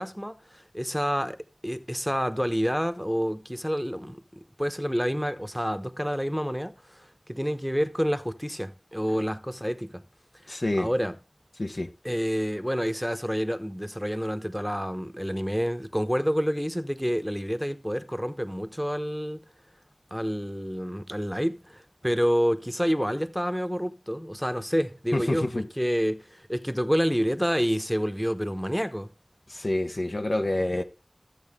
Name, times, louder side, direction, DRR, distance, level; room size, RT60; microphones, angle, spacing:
voice 1, 0.0-1.4 1.6-4.2 4.6-10.0 10.4-11.2 12.0-19.4 20.1-29.1, equal, ahead, 1.0 m, -28 dB
voice 2, 10.5-10.9 11.6-11.9 25.1-25.6 29.5-30.8, left 1 dB, 75° left, 1.0 m, -27 dB
14.0 x 7.8 x 3.6 m
wide cardioid pair, 40°, 0 cm